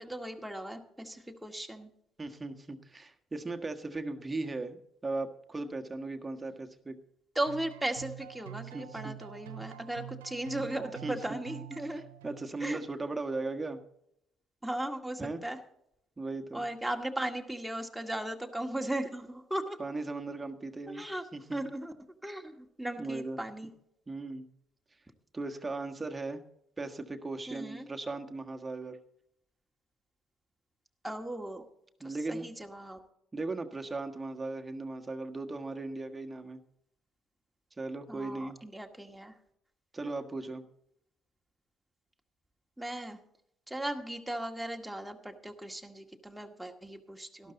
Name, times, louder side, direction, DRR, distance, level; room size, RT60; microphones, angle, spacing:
voice 1, 0.0-1.9 7.4-12.0 12.6-12.8 14.6-15.6 16.5-19.8 20.9-21.2 21.5-21.9 22.2-23.7 27.5-27.9 31.0-31.6 32.0-33.0 38.1-39.3 42.8-43.2 43.7-47.5, right 1 dB, 5° right, 2 dB, 1.9 m, -37 dB
voice 2, 2.2-7.0 8.7-9.1 10.6-11.4 11.8-11.9 12.2-13.8 15.2-15.4 16.2-16.6 19.8-21.0 21.3-21.6 23.0-23.4 24.1-24.4 25.3-26.4 26.8-29.0 32.0-32.5 33.3-36.6 37.8-38.6 39.9-40.6 47.4-47.5, right 3 dB, 25° right, 4 dB, 1.5 m, -37 dB
sound 1, 7.5-12.6, right 14 dB, 85° right, 0.5 m, -46 dB
13.0 x 12.0 x 4.0 m, 0.75 s
hypercardioid pair, 55°, 0 cm